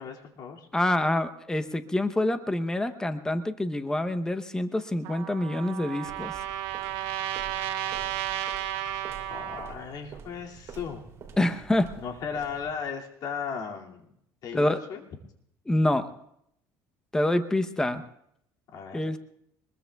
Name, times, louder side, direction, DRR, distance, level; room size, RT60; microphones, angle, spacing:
voice 1, 0.0-0.7 9.3-11.1 12.0-14.0 14.4-15.0 18.7-19.0, left 6 dB, 55° left, 0 dB, 2.4 m, -36 dB
voice 2, 0.7-6.4 11.4-12.0 14.5-14.8 15.7-16.1 17.1-18.0 18.9-19.2, left 1 dB, 10° left, 9 dB, 0.8 m, -26 dB
Trumpet, 5.0-9.7, right 11 dB, 85° right, 1.5 m, -33 dB
sound 1, 6.0-12.9, right 6 dB, 40° right, 2.9 m, -47 dB
24.5 x 21.0 x 2.3 m, 0.74 s
cardioid pair, 120°, 8 cm